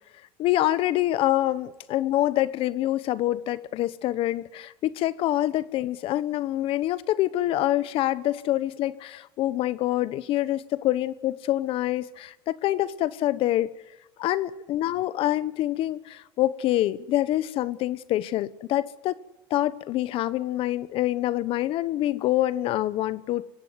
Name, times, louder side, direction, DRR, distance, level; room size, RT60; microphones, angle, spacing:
voice 1, 0.4-13.7 14.2-19.2 19.5-23.4, left 14 dB, 55° left, 16 dB, 1.0 m, -26 dB
24.5 x 17.5 x 9.6 m, 1.1 s
cardioid pair, 130°, 11 cm